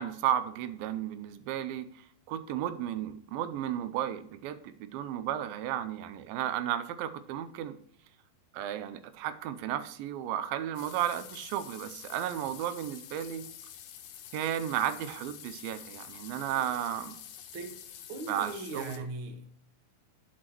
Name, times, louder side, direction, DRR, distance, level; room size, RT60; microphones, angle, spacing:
voice 1, 0.0-7.8 8.5-13.4 14.3-17.2 18.3-19.1, right 11 dB, 90° right, 11 dB, 2.4 m, -34 dB
sound 1, 10.7-19.0, left 10 dB, 80° left, 2.3 m, -48 dB
voice 2, 18.1-19.6, right 2 dB, 60° right, 4 dB, 1.4 m, -39 dB
10.0 x 6.5 x 3.0 m, 0.65 s
omnidirectional pair, 4.1 m